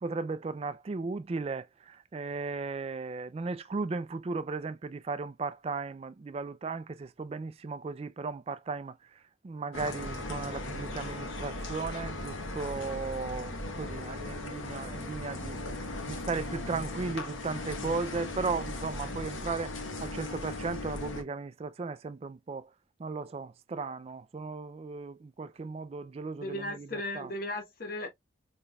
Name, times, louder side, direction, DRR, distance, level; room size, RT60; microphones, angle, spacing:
voice 1, 0.0-15.6 16.1-22.7 23.0-27.3, right 4 dB, 30° right, 0.3 m, -36 dB
sound 1, 9.7-21.2, left 2 dB, 85° left, 1.0 m, -38 dB
voice 2, 26.4-28.1, left 1 dB, 50° left, 1.1 m, -36 dB
5.4 x 3.1 x 2.2 m
head